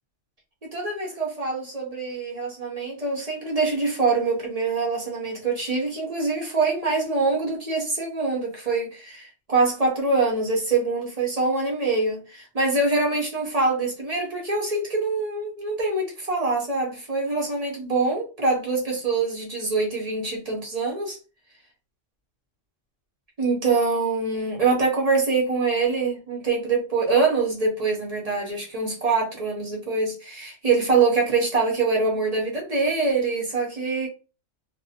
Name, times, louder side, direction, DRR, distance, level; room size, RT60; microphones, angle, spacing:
voice 1, 0.6-21.2 23.4-34.1, right 3 dB, 40° right, 0.6 m, -24 dB
2.5 x 2.1 x 2.7 m
omnidirectional pair, 1.3 m